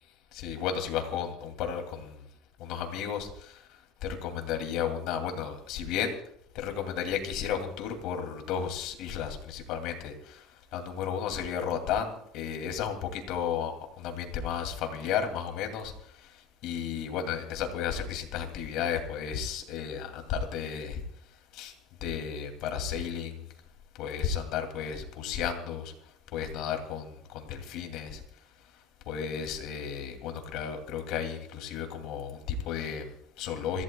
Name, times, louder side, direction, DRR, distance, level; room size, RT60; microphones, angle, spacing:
voice 1, 0.3-2.2 2.6-3.7 4.0-6.2 6.5-21.0 21.5-21.7 22.0-23.4 24.0-25.9 26.3-28.2 29.1-33.8, left 8 dB, 55° left, 5 dB, 2.4 m, -33 dB
26.5 x 15.0 x 2.2 m, 0.72 s
cardioid pair, 160°, 0 cm